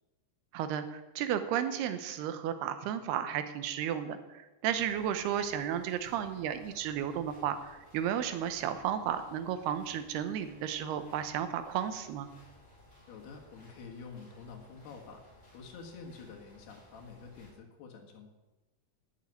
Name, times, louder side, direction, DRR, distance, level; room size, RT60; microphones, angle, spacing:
voice 1, 0.5-12.3, right 9 dB, 90° right, 10 dB, 3.0 m, -33 dB
sound 1, 4.7-17.5, left 1 dB, 30° left, 6.0 m, -59 dB
voice 2, 13.1-18.3, left 5 dB, 90° left, 1 dB, 3.8 m, -48 dB
11.5 x 6.6 x 9.4 m, 1.1 s
omnidirectional pair, 4.5 m